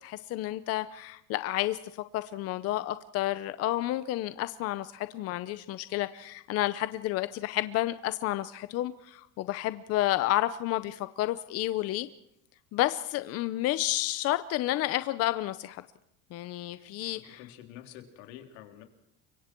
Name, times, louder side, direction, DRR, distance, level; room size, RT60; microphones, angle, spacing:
voice 1, 0.0-1.8 2.1-12.1 12.7-15.8 16.3-17.4, left 15 dB, 40° left, 12 dB, 0.8 m, -30 dB
voice 2, 17.1-18.8, left 11 dB, 80° left, 5 dB, 3.6 m, -48 dB
30.0 x 24.0 x 4.6 m, 0.78 s
cardioid pair, 155°, 36 cm